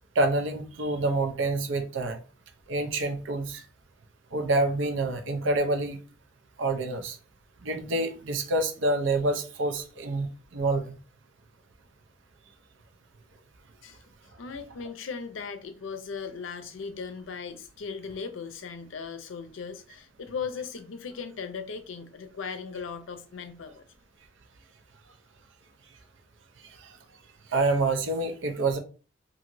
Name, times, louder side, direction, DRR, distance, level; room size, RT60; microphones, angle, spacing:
voice 1, 0.2-2.2 2.7-3.6 4.3-6.0 6.6-7.2 7.6-10.9 26.8-26.9 27.5-28.8, right 2 dB, 85° right, 0.6 m, -27 dB
voice 2, 14.4-23.8, left 5 dB, 90° left, 0.5 m, -38 dB
2.9 x 2.6 x 2.5 m
head